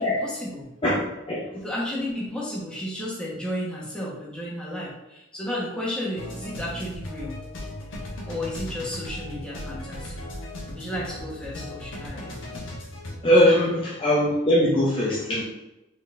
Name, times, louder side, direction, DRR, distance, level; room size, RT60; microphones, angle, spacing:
voice 1, 0.0-0.7 1.5-7.4 8.3-10.2 10.7-12.3 13.6-13.7, left 1 dB, 5° left, -6 dB, 1.1 m, -33 dB
voice 2, 0.8-1.5 13.2-15.4, equal, 25° left, -6 dB, 0.6 m, -21 dB
sound 1, 6.2-13.2, left 1 dB, 70° left, 1.1 m, -37 dB
4.0 x 4.0 x 2.6 m, 0.93 s
head